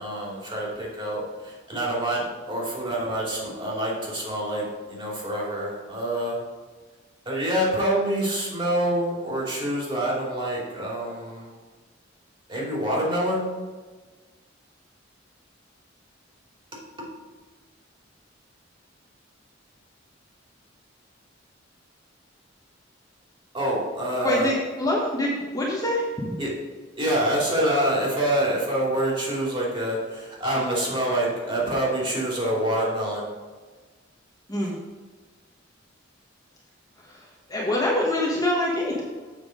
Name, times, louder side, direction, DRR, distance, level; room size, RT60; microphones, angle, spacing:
voice 1, 0.0-6.4 7.2-11.5 12.5-13.5 23.5-24.5 26.4-26.5 27.0-33.3, right 1 dB, 25° right, -4 dB, 2.8 m, -26 dB
voice 2, 24.2-26.3 34.5-34.7 37.0-39.0, left 1 dB, 20° left, -4 dB, 1.3 m, -25 dB
7.4 x 5.7 x 5.1 m, 1.4 s
head